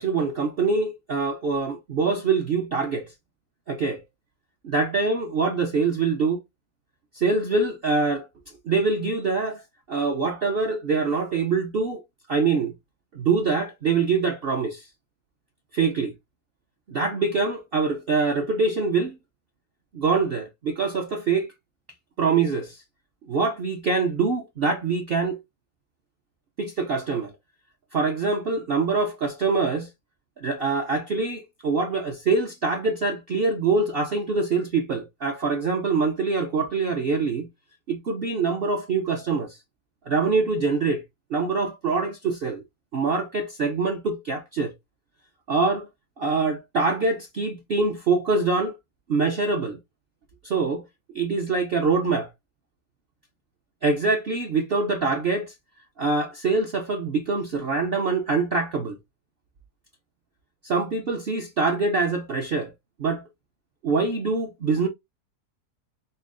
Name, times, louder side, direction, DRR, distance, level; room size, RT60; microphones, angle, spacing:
voice 1, 0.0-3.1 3.7-4.0 4.6-6.4 7.1-8.3 8.6-9.6 9.9-12.0 12.3-12.7 13.1-14.9 15.7-16.1 16.9-19.2 19.9-21.5 22.2-22.8 23.3-25.4 26.6-27.3 27.9-29.9 30.4-37.5 37.9-39.6 40.1-41.0 41.3-42.6 42.9-44.7 45.5-45.9 46.2-48.8 49.1-49.8 50.4-50.8 51.1-52.3 53.8-55.5 56.0-59.0 60.6-62.7 63.0-63.2 63.8-64.9, right 4 dB, 60° right, 0.6 m, -24 dB
5.3 x 2.1 x 2.4 m
omnidirectional pair, 1.7 m